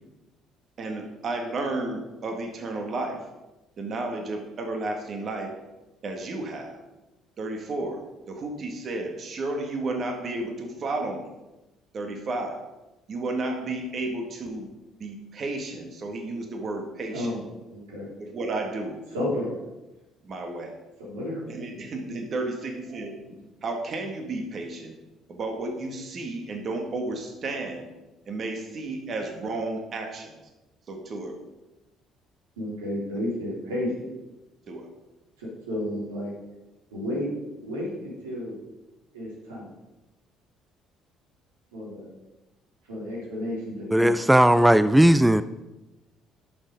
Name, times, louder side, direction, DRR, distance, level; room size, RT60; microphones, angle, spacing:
voice 1, 0.8-3.3 3.8-5.5 6.0-6.8 7.4-8.0 8.3-11.3 11.9-12.6 13.1-14.7 15.0-17.4 18.2-19.0 20.2-20.8 21.5-23.1 23.6-25.0 25.3-27.9 28.3-30.4 30.9-31.4 34.7-34.9, right 2 dB, 50° right, 4 dB, 1.8 m, -32 dB
voice 2, 17.1-17.4 17.7-18.1 19.1-19.6 21.0-21.9 32.6-34.1 35.4-36.3 36.9-37.3 37.6-38.6 39.1-39.7 41.7-42.1 42.8-44.2, left 1 dB, 90° right, -4 dB, 3.3 m, -32 dB
voice 3, 43.9-45.4, right 1 dB, 5° right, 14 dB, 0.4 m, -17 dB
11.0 x 6.4 x 5.1 m, 1.0 s
hypercardioid pair, 55°, 0 cm